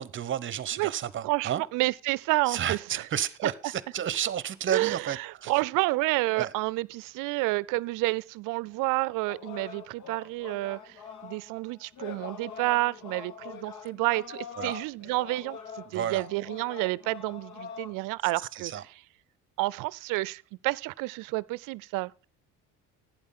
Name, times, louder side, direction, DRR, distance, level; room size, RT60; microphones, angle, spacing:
voice 1, 0.0-1.6 2.5-5.5 6.3-6.5 14.6-14.8 15.9-16.3 18.5-18.8, right 10 dB, 40° right, 0.8 m, -31 dB
voice 2, 1.2-2.8 4.7-18.7 19.6-22.2, right 21 dB, 80° right, 0.5 m, -30 dB
sound 1, 9.3-18.0, left 7 dB, 65° left, 1.4 m, -44 dB
11.5 x 9.1 x 3.7 m
cardioid pair, 115°, 32 cm